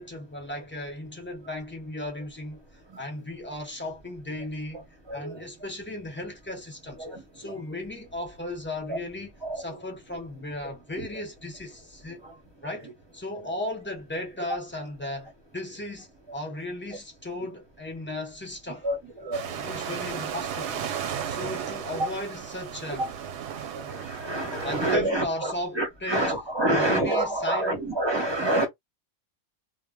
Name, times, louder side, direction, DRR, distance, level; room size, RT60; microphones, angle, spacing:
voice 1, 0.0-2.6 3.0-4.9 5.1-7.1 7.3-12.2 12.6-18.9 19.6-20.9 21.3-23.2 24.6-26.4 26.7-27.8, left 1 dB, 15° left, 0.4 m, -36 dB
voice 2, 5.1-5.4 7.0-7.2 8.9-9.0 9.4-9.6 12.2-12.3 18.8-19.7 23.0-23.1 23.9-28.7, right 1 dB, 25° right, 0.7 m, -27 dB
sound 1, 19.3-25.0, right 8 dB, 65° right, 0.8 m, -34 dB
2.1 x 2.0 x 3.5 m
omnidirectional pair, 1.3 m